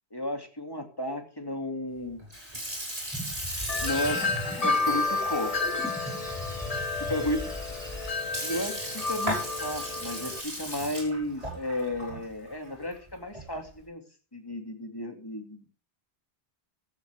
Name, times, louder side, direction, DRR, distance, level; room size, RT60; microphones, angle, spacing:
voice 1, 0.1-2.2 3.8-5.5 7.0-7.5 8.4-14.0 14.3-15.6, left 1 dB, 20° left, 4 dB, 2.7 m, -33 dB
Sink (filling or washing) / Fill (with liquid), 2.2-13.7, equal, 35° right, 6.1 m, -38 dB
sound 1, 3.1-8.1, equal, 5° left, 7.0 m, -38 dB
Wind chime, 3.7-10.4, left 3 dB, 35° left, 1.0 m, -31 dB
15.0 x 13.0 x 3.6 m, 0.35 s
omnidirectional pair, 1.1 m